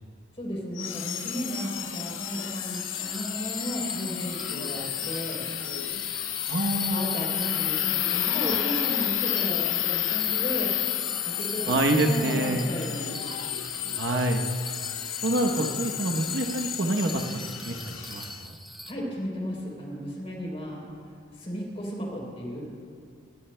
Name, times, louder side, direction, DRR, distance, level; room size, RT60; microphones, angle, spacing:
voice 1, 0.4-5.5 6.9-10.7 11.2-13.1 18.9-20.8 21.4-22.6, equal, 30° left, -3 dB, 3.6 m, -34 dB
sound 1, 0.8-18.4, left 11 dB, 85° left, 0.7 m, -31 dB
Bell, 2.6-18.9, equal, ahead, 0.4 m, -43 dB
voice 2, 6.5-7.1 11.7-12.6 14.0-14.4 15.2-17.2 17.6-18.6, right 1 dB, 65° right, 4 dB, 1.0 m, -26 dB
19.5 x 18.0 x 2.3 m, 2.3 s
head